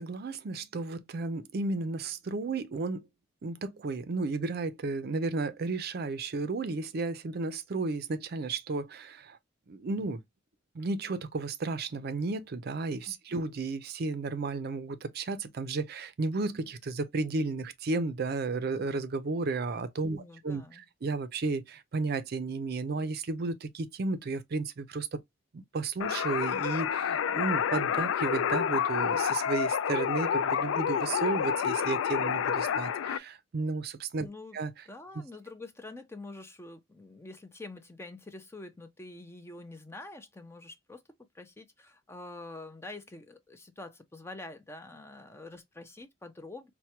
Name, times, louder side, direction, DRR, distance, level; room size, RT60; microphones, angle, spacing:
voice 1, 0.0-3.1 3.4-9.4 9.7-10.2 10.7-25.2 25.5-34.3 34.5-34.7 35.1-35.2, right 3 dB, 55° right, 0.5 m, -33 dB
voice 2, 20.0-20.9 34.2-34.6 34.9-41.0 41.3-46.7, left 2 dB, 15° left, 0.5 m, -46 dB
sound 1, 26.0-33.2, left 8 dB, 85° left, 0.3 m, -29 dB
4.4 x 2.1 x 2.8 m
head